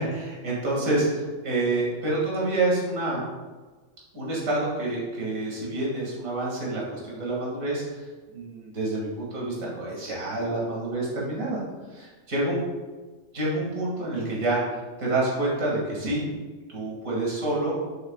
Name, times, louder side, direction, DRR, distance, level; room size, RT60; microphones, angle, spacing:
voice 1, 0.0-3.2 4.1-8.1 8.3-11.6 12.3-12.6 13.3-16.3 16.7-17.7, right 2 dB, 65° right, -5 dB, 2.7 m, -27 dB
10.5 x 7.7 x 2.4 m, 1.3 s
omnidirectional pair, 1.5 m